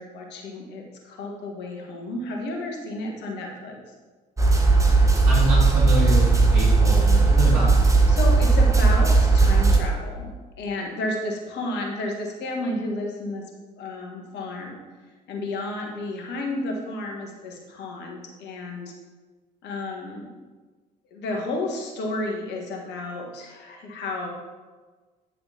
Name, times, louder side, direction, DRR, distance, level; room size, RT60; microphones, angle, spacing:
voice 1, 0.0-3.8 8.1-10.3 10.6-13.4 13.8-14.8 15.3-18.8 19.6-20.3 21.1-24.3, left 2 dB, 55° left, 1 dB, 1.5 m, -32 dB
sound 1, 4.4-9.8, right 3 dB, 15° right, 1.1 m, -17 dB
voice 2, 5.2-7.7, equal, 75° right, -5 dB, 2.4 m, -26 dB
8.8 x 6.5 x 2.8 m, 1.4 s
figure-of-eight pair, 50°, 21 cm